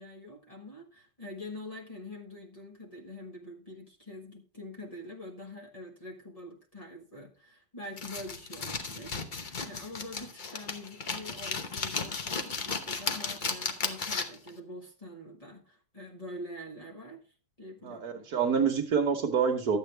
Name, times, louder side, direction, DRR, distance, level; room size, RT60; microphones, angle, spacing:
voice 1, 0.0-17.2 17.6-18.3, left 1 dB, 20° left, -3 dB, 1.5 m, -45 dB
sound 1, 8.0-14.5, left 4 dB, 40° left, 0.8 m, -35 dB
voice 2, 17.8-19.8, right 6 dB, 60° right, 6 dB, 1.5 m, -27 dB
11.5 x 8.0 x 3.3 m, 0.36 s
omnidirectional pair, 1.9 m